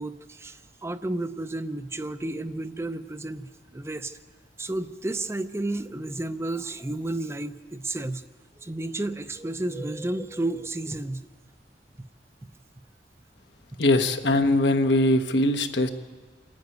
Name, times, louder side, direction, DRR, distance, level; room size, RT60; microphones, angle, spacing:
voice 1, 0.0-4.2 4.6-8.2 8.6-11.3, right 2 dB, 15° right, 11 dB, 0.5 m, -32 dB
voice 2, 13.8-15.9, left 1 dB, 80° left, 7 dB, 1.2 m, -21 dB
27.5 x 10.5 x 9.3 m, 1.4 s
head